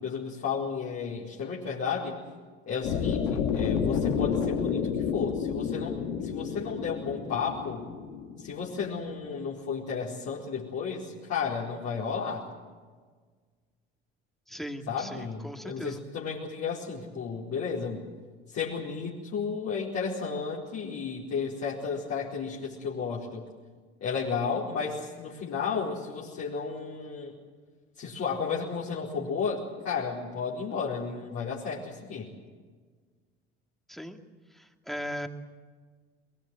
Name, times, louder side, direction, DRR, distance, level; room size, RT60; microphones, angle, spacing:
voice 1, 0.0-2.2 2.7-7.9 8.4-12.5 14.9-18.0 18.5-23.5 24.0-27.3 28.0-32.3, left 5 dB, 55° left, -6 dB, 4.5 m, -33 dB
sound 1, 2.8-8.9, left 7 dB, 75° left, 2.6 m, -30 dB
voice 2, 14.5-16.0 33.9-34.2 34.5-35.3, equal, ahead, 5 dB, 2.4 m, -38 dB
22.5 x 22.0 x 7.9 m, 1.5 s
hypercardioid pair, 60°, 31 cm